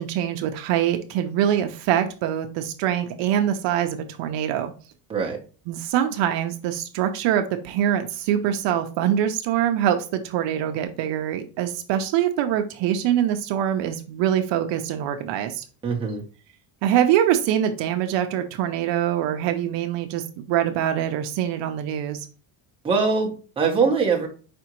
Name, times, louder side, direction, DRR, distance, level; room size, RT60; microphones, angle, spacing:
voice 1, 0.0-4.7 5.7-15.6 16.8-22.3, right 10 dB, 60° right, 6 dB, 0.7 m, -24 dB
voice 2, 15.8-16.2 22.8-24.3, right 5 dB, 10° right, -1 dB, 0.8 m, -22 dB
5.0 x 3.4 x 2.9 m, 0.37 s
cardioid pair, 160°, 49 cm